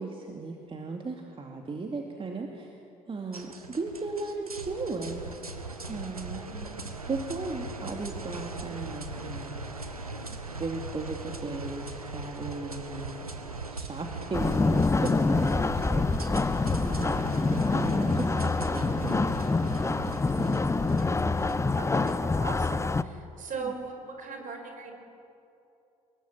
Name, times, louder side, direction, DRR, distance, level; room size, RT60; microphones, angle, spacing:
voice 1, 0.0-2.7 3.1-5.2 5.8-6.4 7.1-9.6 10.6-17.3 17.7-19.4 23.6-23.7, right 3 dB, 30° right, 2 dB, 2.7 m, -36 dB
sound 1, 3.3-22.6, right 2 dB, 90° right, 1.3 m, -40 dB
voice 2, 6.4-6.8 21.0-24.9, right 4 dB, 45° right, 5 dB, 5.3 m, -39 dB
sound 2, 14.3-23.0, left 3 dB, 15° left, 0.8 m, -26 dB
25.0 x 22.0 x 9.0 m, 2.8 s
figure-of-eight pair, 50°, 18 cm